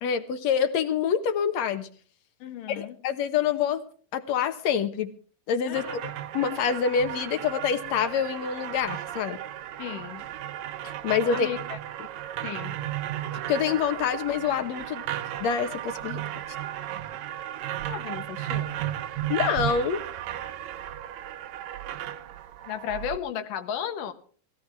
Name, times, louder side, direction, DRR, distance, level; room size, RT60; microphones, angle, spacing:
voice 1, 0.0-1.9 2.8-3.8 4.1-5.1 5.5-6.0 6.3-9.4 10.8-11.5 13.5-15.0 15.4-16.2 19.3-20.0, left 7 dB, 65° left, 2.3 m, -26 dB
voice 2, 2.4-3.0 5.7-6.1 9.8-10.2 11.3-11.8 12.4-12.8 17.9-18.9 22.7-24.1, left 9 dB, 85° left, 3.0 m, -35 dB
sound 1, 5.7-23.2, right 12 dB, 70° right, 1.8 m, -35 dB
19.5 x 16.5 x 3.5 m
omnidirectional pair, 3.7 m